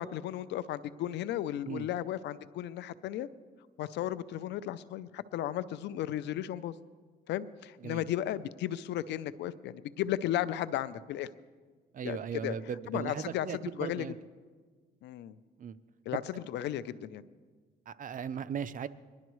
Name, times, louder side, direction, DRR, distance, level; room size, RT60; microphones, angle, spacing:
voice 1, 0.0-3.3 3.8-6.7 7.3-11.3 12.0-12.6 12.9-14.1 15.0-15.4 16.1-17.2, left 12 dB, 85° left, 15 dB, 0.5 m, -35 dB
voice 2, 11.9-14.1 15.6-15.8 16.1-16.2 17.9-18.9, right 7 dB, 50° right, 14 dB, 0.6 m, -37 dB
21.5 x 11.5 x 3.1 m, 1.5 s
cardioid pair, 80°, 18 cm